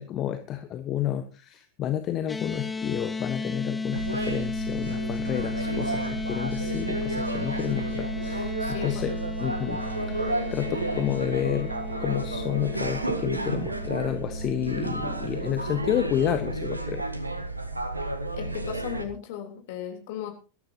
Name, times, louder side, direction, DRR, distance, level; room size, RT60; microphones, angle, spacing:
voice 1, 0.0-9.1 9.4-9.8 10.1-11.7 12.0-17.0, left 11 dB, 30° left, 9 dB, 1.2 m, -30 dB
sound 1, 2.3-16.7, left 4 dB, 10° left, 0.9 m, -35 dB
sound 2, 3.9-19.0, right 2 dB, 80° right, 1.7 m, -32 dB
voice 2, 8.6-9.1 18.3-20.3, left 9 dB, 50° left, 4 dB, 3.6 m, -36 dB
22.0 x 13.0 x 2.9 m, 0.33 s
figure-of-eight pair, 90°, 0 cm